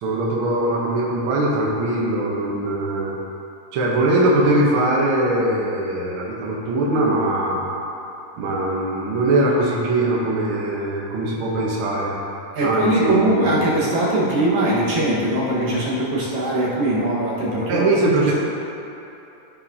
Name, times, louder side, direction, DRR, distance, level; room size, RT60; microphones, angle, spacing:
voice 1, 0.0-3.1 3.7-7.6 8.4-12.1 12.6-13.4 17.7-18.3, right 1 dB, 75° right, -4 dB, 1.2 m, -21 dB
voice 2, 12.5-17.8, right 1 dB, 60° right, -7 dB, 2.6 m, -21 dB
14.5 x 4.9 x 2.8 m, 2.9 s
omnidirectional pair, 3.9 m